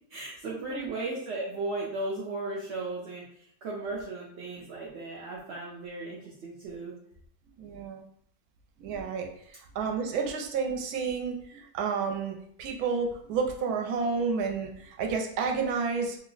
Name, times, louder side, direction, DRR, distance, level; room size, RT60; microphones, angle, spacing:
voice 1, 0.1-6.9, right 2 dB, 60° right, -4 dB, 0.8 m, -36 dB
voice 2, 7.6-8.0 8.8-16.2, right 5 dB, 85° right, 2 dB, 1.1 m, -31 dB
3.0 x 2.0 x 3.8 m, 0.67 s
omnidirectional pair, 1.6 m